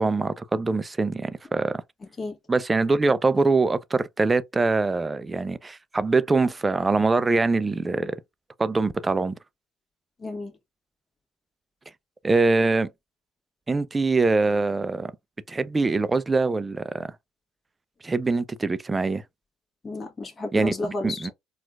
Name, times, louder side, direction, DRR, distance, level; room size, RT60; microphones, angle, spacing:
voice 1, 0.0-1.8 2.5-8.2 8.6-9.3 12.2-12.9 13.7-15.1 15.5-17.1 18.0-19.2 20.5-20.7 21.0-21.3, right 3 dB, 25° right, 0.4 m, -23 dB
voice 2, 10.2-10.5 19.8-21.3, left 2 dB, 30° left, 1.2 m, -32 dB
4.3 x 2.4 x 2.3 m
hypercardioid pair, 60°, 0 cm